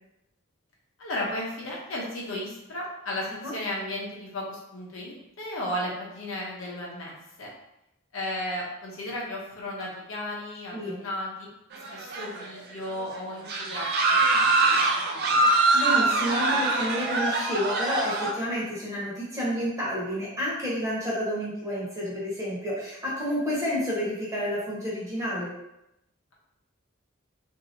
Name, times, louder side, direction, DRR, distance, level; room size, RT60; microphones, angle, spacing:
voice 1, 1.0-7.5 8.1-11.5 11.9-15.5, left 1 dB, 75° left, -3 dB, 0.8 m, -35 dB
sound 1, 11.7-12.6 12.9-13.0 13.5-18.3, right 3 dB, 50° right, 0.4 m, -24 dB
voice 2, 15.7-25.5, equal, 15° right, -7 dB, 1.0 m, -30 dB
2.9 x 2.6 x 2.6 m, 0.86 s
head